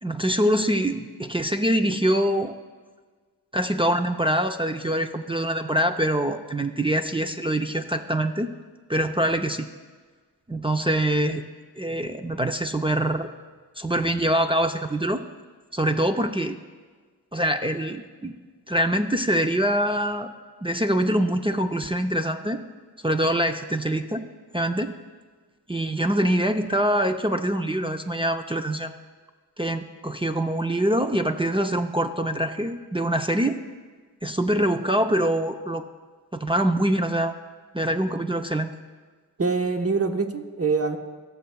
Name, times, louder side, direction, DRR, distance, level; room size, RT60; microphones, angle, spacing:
voice 1, 0.0-2.5 3.5-8.5 8.9-9.7 10.5-11.4 11.8-13.3 13.8-15.2 15.7-16.6 17.3-18.3 18.7-20.3 20.6-22.6 23.0-24.3 24.5-24.9 25.7-28.9 29.6-33.6 34.2-35.8 36.3-37.4 37.7-38.7, right 1 dB, 15° right, 6 dB, 0.5 m, -24 dB
voice 2, 39.4-41.0, right 4 dB, 35° right, 6 dB, 1.1 m, -24 dB
16.5 x 6.7 x 2.3 m, 1.4 s
cardioid pair, 45°, 41 cm